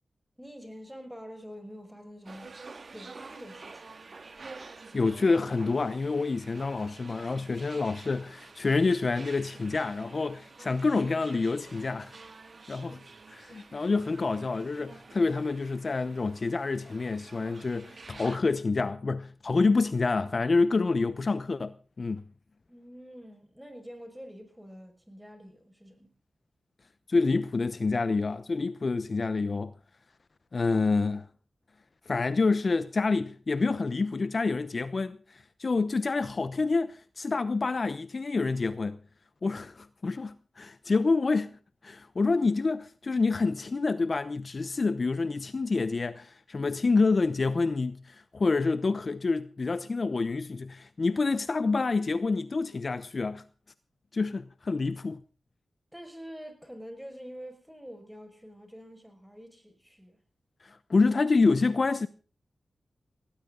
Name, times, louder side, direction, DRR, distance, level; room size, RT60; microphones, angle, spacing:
voice 1, 0.4-2.7 2.9-3.9 12.8-13.1 22.7-26.1 55.9-60.2, equal, 5° right, 5.7 m, -46 dB
sound 1, 2.2-18.4, right 4 dB, 55° right, 2.1 m, -49 dB
voice 2, 4.9-12.2 12.7-12.9 13.4-22.2 27.1-29.7 30.5-31.3 32.1-39.0 39.4-41.6 41.8-53.4 54.1-55.2 60.6-62.1, left 3 dB, 50° left, 0.8 m, -27 dB
19.0 x 18.0 x 3.9 m
cardioid pair, 65°, 0 cm